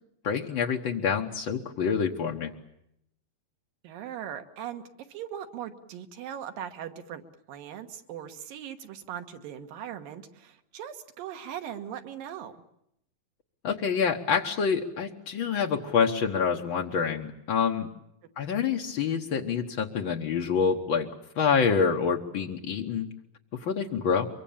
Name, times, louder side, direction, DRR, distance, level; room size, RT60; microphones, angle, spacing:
voice 1, 0.2-2.5 13.6-17.9 18.4-21.1 21.4-23.1 23.6-24.3, left 6 dB, 80° left, 2 dB, 1.1 m, -27 dB
voice 2, 3.8-4.8 5.1-7.2 7.5-12.5, right 9 dB, 85° right, 7 dB, 3.1 m, -39 dB
24.0 x 23.5 x 8.7 m, 0.79 s
omnidirectional pair, 4.0 m